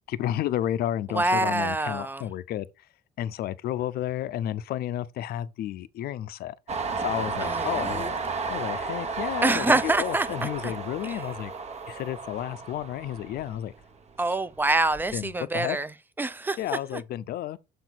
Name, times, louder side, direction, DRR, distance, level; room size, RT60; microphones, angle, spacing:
voice 1, 0.1-2.7 3.2-6.5 7.0-8.2 8.5-11.5 11.9-13.7 15.1-15.8 16.6-17.6, left 12 dB, 65° left, 0.5 m, -31 dB
voice 2, 1.1-2.3 7.4-8.1 9.4-10.7 11.0-11.2 14.2-15.9 16.2-17.0, right 2 dB, 10° right, 0.5 m, -26 dB
Train, 6.7-14.1 14.5-15.3, right 4 dB, 40° right, 1.1 m, -33 dB
7.0 x 4.5 x 3.9 m
cardioid pair, 110°, 17 cm